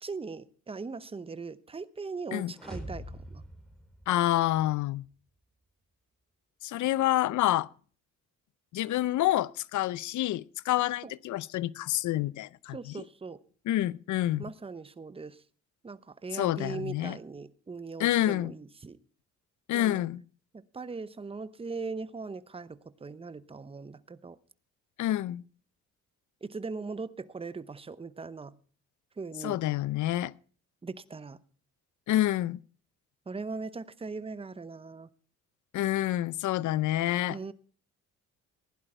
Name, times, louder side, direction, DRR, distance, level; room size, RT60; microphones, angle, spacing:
voice 1, 0.0-3.4 11.0-11.1 12.7-13.4 14.4-15.4 15.8-19.0 19.7-20.0 20.7-24.4 26.4-28.6 29.2-29.6 30.8-31.4 33.3-35.1 37.3-37.5, right 4 dB, 20° right, 0.8 m, -40 dB
sound 1, 2.5-4.7, equal, ahead, 4.4 m, -44 dB
voice 2, 4.1-5.1 6.6-7.7 8.7-13.0 13.7-14.4 16.3-17.2 18.0-18.5 19.7-20.2 25.0-25.4 29.4-30.3 32.1-32.6 35.7-37.4, left 14 dB, 75° left, 0.6 m, -28 dB
15.5 x 11.0 x 4.4 m
cardioid pair, 90°, 30 cm